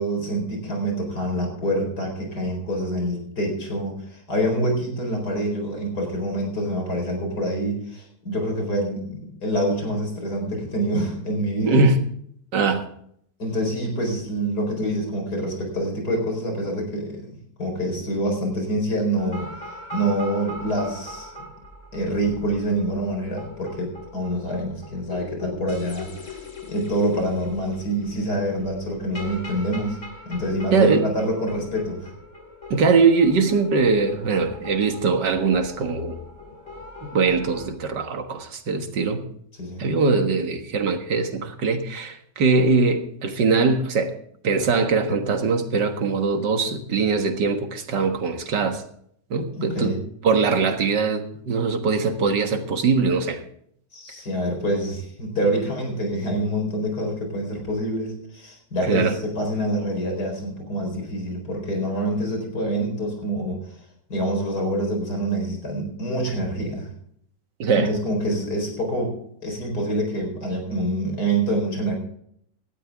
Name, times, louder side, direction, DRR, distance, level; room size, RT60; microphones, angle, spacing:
voice 1, 0.0-11.8 13.4-19.5 19.9-21.3 21.9-30.0 30.2-32.1 39.6-39.8 49.6-50.0 53.9-63.6 64.1-66.9 67.7-69.1 69.4-72.0, right 1 dB, 60° left, 2 dB, 5.0 m, -26 dB
voice 2, 11.6-12.0 12.5-12.9 30.7-31.0 32.7-36.2 37.0-39.2 39.8-44.1 44.4-48.8 49.3-50.0 50.2-53.4 58.9-59.2 67.6-67.9, right 4 dB, 75° right, 6 dB, 2.2 m, -21 dB
sound 1, 19.2-37.7, left 2 dB, 45° left, 2.9 m, -41 dB
17.5 x 13.0 x 3.6 m, 0.67 s
omnidirectional pair, 1.9 m